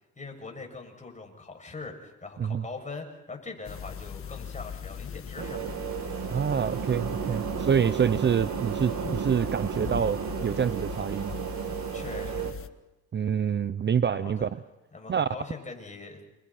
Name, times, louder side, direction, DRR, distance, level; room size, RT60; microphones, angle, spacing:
voice 1, 0.2-5.6 7.4-7.6 11.9-12.6 14.1-14.5 14.9-16.2, left 3 dB, 25° left, 2 dB, 7.1 m, -42 dB
sound 1, 3.6-12.7, left 8 dB, 45° left, 1.3 m, -39 dB
sound 2, 5.4-12.5, right 9 dB, 75° right, 2.2 m, -34 dB
voice 2, 6.3-11.3 13.1-14.5 15.1-15.3, right 7 dB, 35° right, 14 dB, 0.8 m, -26 dB
29.5 x 28.0 x 4.4 m, 1.0 s
cardioid pair, 90°, 30 cm